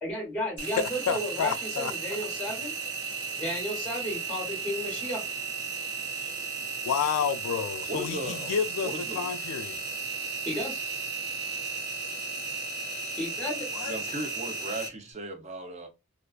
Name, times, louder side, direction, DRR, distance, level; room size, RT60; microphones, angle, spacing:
voice 1, 0.0-2.7 3.3-5.2 10.4-10.8 13.2-13.7, left 1 dB, 5° left, 0.9 m, -33 dB
Engine, 0.6-14.9, right 4 dB, 50° right, 0.9 m, -35 dB
voice 2, 0.8-1.9 6.9-9.8 13.7-13.9, left 7 dB, 85° left, 0.3 m, -30 dB
voice 3, 7.9-8.6 8.8-9.3 13.9-15.9, right 1 dB, 30° right, 0.5 m, -37 dB
2.4 x 2.3 x 2.2 m
head